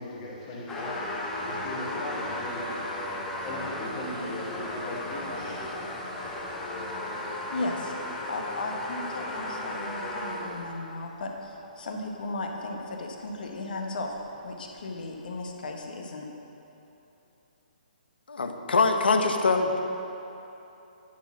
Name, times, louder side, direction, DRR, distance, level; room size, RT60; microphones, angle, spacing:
voice 1, 0.0-6.1, left 1 dB, 30° left, -4 dB, 1.6 m, -38 dB
sound 1, 0.7-10.8 11.5-11.6 13.2-13.3 13.6-13.7 14.2-14.3 14.8-14.9, left 1 dB, 10° left, 0.8 m, -35 dB
voice 2, 6.8-14.1 14.4-16.2, left 2 dB, 60° left, 2 dB, 1.2 m, -36 dB
voice 3, 18.3-19.8, left 4 dB, 85° left, 5 dB, 0.9 m, -23 dB
9.9 x 4.2 x 7.1 m, 3.0 s
hypercardioid pair, 155°, 5 cm